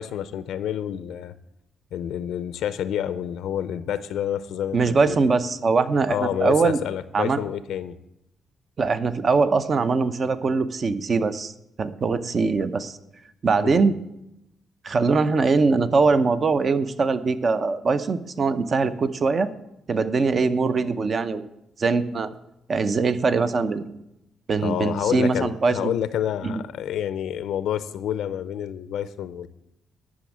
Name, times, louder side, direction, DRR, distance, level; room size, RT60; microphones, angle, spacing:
voice 1, 0.0-1.3 1.9-5.2 6.1-8.0 13.6-13.8 24.6-29.5, left 10 dB, 80° left, 14 dB, 0.5 m, -28 dB
voice 2, 4.7-6.8 7.1-7.4 8.8-11.5 11.8-13.0 13.4-14.0 14.8-19.5 19.9-21.5 21.8-22.3 22.7-24.0 24.5-25.9 26.4-26.6, right 4 dB, 45° right, 12 dB, 0.7 m, -22 dB
11.5 x 6.2 x 7.4 m, 0.85 s
cardioid pair, 90°, 0 cm